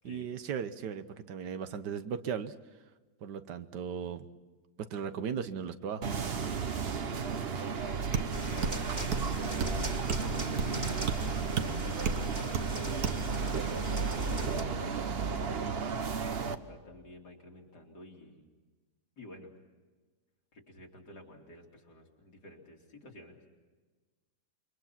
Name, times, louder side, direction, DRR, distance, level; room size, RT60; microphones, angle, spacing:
voice 1, 0.0-2.5 3.2-4.3 4.8-6.0, right 7 dB, 85° right, 11 dB, 1.6 m, -37 dB
sound 1, 6.0-16.6, right 5 dB, 45° right, 1.0 m, -34 dB
voice 2, 7.6-9.2 10.1-13.0 13.3-14.5 15.5-18.4 19.2-19.5 20.5-23.4, left 1 dB, 75° left, 0 dB, 3.6 m, -51 dB
sound 2, 8.1-8.3 8.6-8.8 9.1-9.3 9.6-9.8 10.1-10.3 10.6-10.8 11.1-11.2 11.6-11.7 12.1-12.2 12.5-12.7 13.0-13.2, right 7 dB, 65° right, 1.6 m, -31 dB
sound 3, 8.3-14.6, right 1 dB, 25° right, 2.2 m, -39 dB
28.0 x 23.5 x 5.9 m, 1.3 s
omnidirectional pair, 1.8 m